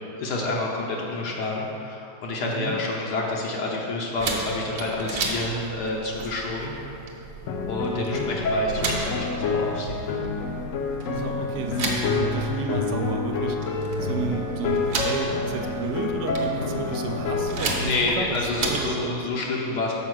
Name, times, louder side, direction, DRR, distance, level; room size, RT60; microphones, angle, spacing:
voice 1, 0.2-6.7 7.7-10.0 17.8-19.9, left 3 dB, 80° left, -2 dB, 1.5 m, -28 dB
voice 2, 2.4-2.8 5.5-5.8 7.9-8.3 11.1-13.6 14.0-19.3, right 4 dB, 80° right, 3 dB, 1.1 m, -32 dB
sound 1, 4.2-19.0, right 3 dB, 50° right, 0.9 m, -34 dB
sound 2, 7.5-17.9, left 3 dB, 60° left, 0.9 m, -28 dB
6.1 x 4.7 x 6.2 m, 2.7 s
omnidirectional pair, 1.8 m